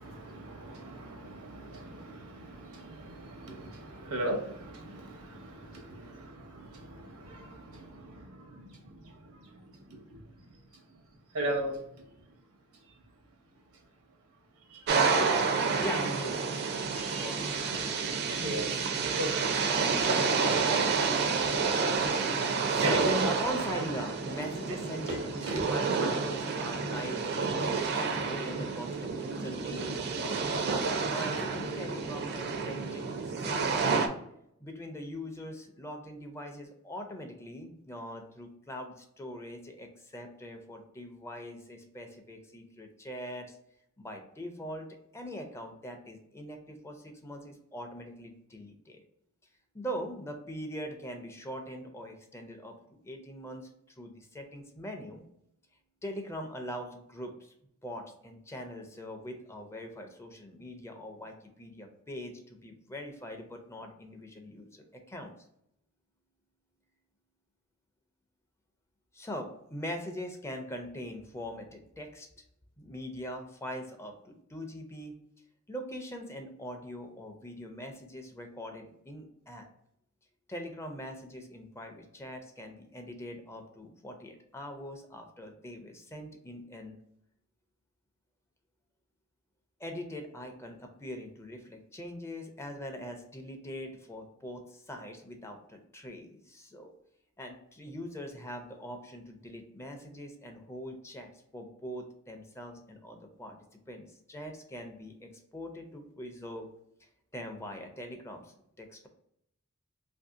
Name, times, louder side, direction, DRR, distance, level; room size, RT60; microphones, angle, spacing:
voice 1, 0.0-9.1 9.9-10.0 11.3-11.8 14.7-14.8 15.3-15.6 16.9-17.3 18.3-18.7 19.2-19.6 21.6-21.8 22.8-23.3 25.5-25.7, right 1 dB, 90° right, 2 dB, 0.9 m, -38 dB
sound 1, 14.9-34.1, right 4 dB, 50° right, 0.4 m, -29 dB
voice 2, 15.8-16.5 17.1-18.9 22.7-30.4 30.7-34.0 34.6-43.6 44.0-49.0 49.7-55.2 56.0-57.5 57.8-65.3 69.1-72.3 72.8-75.2 75.7-79.7 80.5-87.0 89.8-96.9 97.4-103.6 103.9-106.7 107.3-109.1, equal, 15° left, 4 dB, 0.4 m, -42 dB
2.7 x 2.6 x 3.6 m, 0.74 s
head